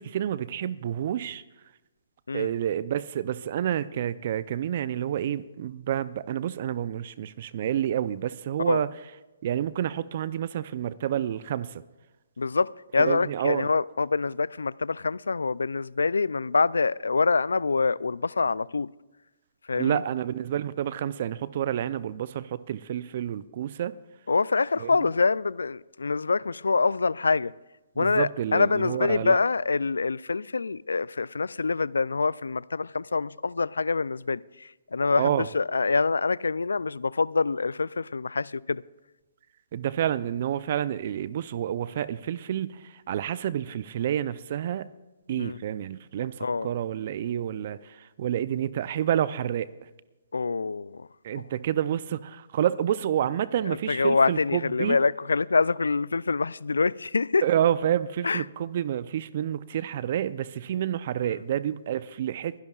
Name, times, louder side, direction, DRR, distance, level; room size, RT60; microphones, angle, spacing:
voice 1, 0.0-1.4 2.3-8.9 9.4-11.8 13.0-13.7 19.7-23.9 24.8-24.9 28.0-29.4 35.2-35.5 39.7-44.9 45.3-49.7 51.2-55.0 57.4-62.5, right 10 dB, 50° right, 0.5 m, -29 dB
voice 2, 12.4-18.9 19.7-20.0 24.3-27.5 28.0-38.8 45.4-45.6 46.4-46.7 50.3-51.1 53.6-57.4 58.2-58.4 61.2-61.3, left 4 dB, 85° left, 0.3 m, -25 dB
23.0 x 11.5 x 2.4 m
hypercardioid pair, 135°, 0 cm